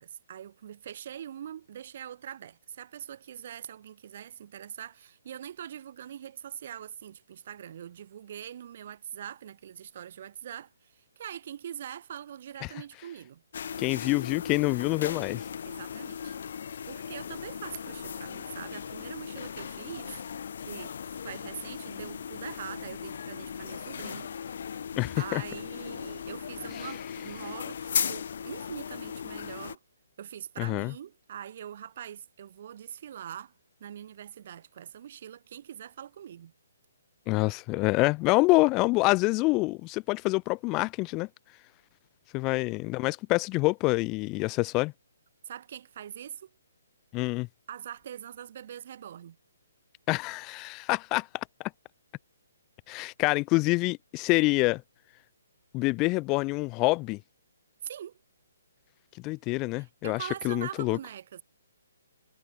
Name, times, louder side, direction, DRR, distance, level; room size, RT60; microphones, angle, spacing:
voice 1, 0.0-13.4 15.6-16.4 16.9-20.2 20.6-24.3 25.2-29.8 30.2-33.5 33.8-36.5 45.4-46.5 47.7-49.4 57.8-58.2 59.8-61.4, right 10 dB, 50° right, 1.4 m, -43 dB
sound 1, 13.5-29.8, left 7 dB, 60° left, 1.0 m, -37 dB
voice 2, 13.8-15.4 25.0-25.4 30.6-30.9 37.3-41.3 42.3-44.9 47.1-47.5 50.1-51.3 51.6-51.7 52.9-54.8 55.7-57.2 59.2-61.0, left 24 dB, 25° left, 0.6 m, -26 dB
hypercardioid pair, 150°, 0 cm